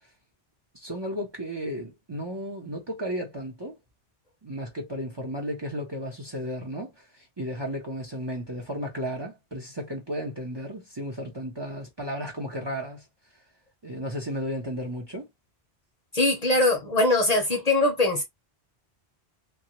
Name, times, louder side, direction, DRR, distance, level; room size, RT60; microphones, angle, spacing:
voice 1, 0.7-3.8 4.4-13.0 13.8-15.3, equal, 30° right, 0.7 m, -34 dB
voice 2, 16.1-18.2, left 2 dB, 45° left, 0.7 m, -22 dB
2.9 x 2.3 x 2.9 m
omnidirectional pair, 1.1 m